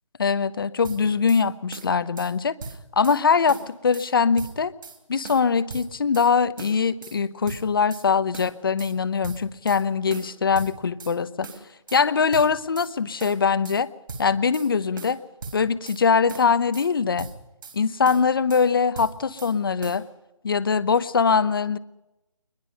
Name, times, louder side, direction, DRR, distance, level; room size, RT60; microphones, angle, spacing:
voice 1, 0.2-2.6 3.0-4.7 5.1-11.5 11.9-13.9 14.2-15.2 15.5-17.3 17.7-20.0 20.4-21.8, left 5 dB, 40° left, 14 dB, 0.9 m, -22 dB
sound 1, 0.8-1.4 1.7-2.3 2.6-3.2 3.5-4.1 4.4-5.0 5.2-6.3 6.6-7.2 7.5-8.1 8.3-8.9 9.2-9.8 10.1-11.2 11.4-12.0 12.3-12.9 13.2-13.8 14.1-14.7 15.0-16.0 16.3-16.9 17.2-17.8 18.0-18.7 18.9-19.5 19.8-20.0, right 4 dB, 40° right, 3.6 m, -39 dB
22.5 x 21.0 x 5.4 m, 0.94 s
figure-of-eight pair, 165°, 17 cm